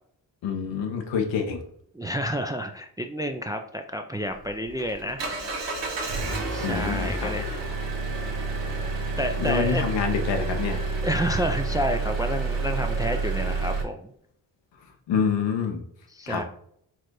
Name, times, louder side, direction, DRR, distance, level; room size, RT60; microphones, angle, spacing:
voice 1, 0.4-1.6 6.6-7.6 9.4-10.8 15.1-15.8 16.3-16.4, left 6 dB, 90° left, 4 dB, 0.9 m, -27 dB
voice 2, 1.9-5.3 6.5-7.5 9.2-9.8 11.0-14.1 16.1-16.4, equal, 10° right, 5 dB, 0.4 m, -29 dB
Engine, 4.3-13.8, right 3 dB, 90° right, 1.2 m, -29 dB
4.6 x 2.5 x 4.6 m, 0.66 s
cardioid pair, 70°, 43 cm